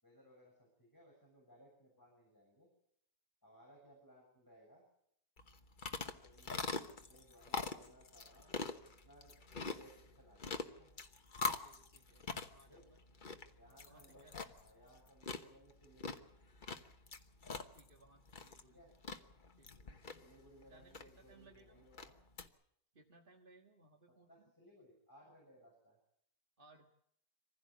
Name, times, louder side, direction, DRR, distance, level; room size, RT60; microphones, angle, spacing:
voice 1, 0.0-2.7 3.4-4.8 6.2-8.6 8.9-10.9 12.7-12.8 13.5-14.3 14.6-16.3 18.6-18.9 20.1-22.2 24.1-26.0, equal, 10° left, -2 dB, 6.7 m, -63 dB
sound 1, 5.4-22.5, left 4 dB, 35° left, 1.2 m, -45 dB
voice 2, 11.4-13.4 13.8-14.5 17.4-18.8 19.6-20.2 20.7-21.9 22.9-24.5 26.6-26.9, right 2 dB, 35° right, 2 dB, 1.7 m, -65 dB
25.0 x 15.5 x 8.4 m, 0.74 s
omnidirectional pair, 1.6 m